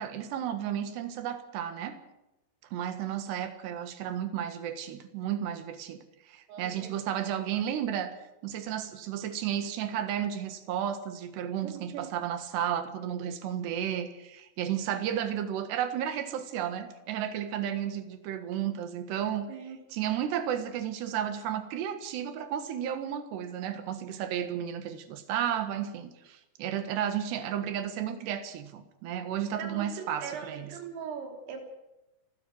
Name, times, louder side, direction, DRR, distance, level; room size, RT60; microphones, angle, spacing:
voice 1, 0.0-2.0 2.7-8.2 8.4-19.5 19.9-30.7, right 10 dB, 65° right, 10 dB, 3.4 m, -33 dB
voice 2, 6.5-7.2 11.6-12.2 19.5-19.8 29.5-31.6, right 6 dB, 90° right, 4 dB, 5.9 m, -40 dB
29.5 x 14.0 x 6.3 m, 0.95 s
omnidirectional pair, 5.7 m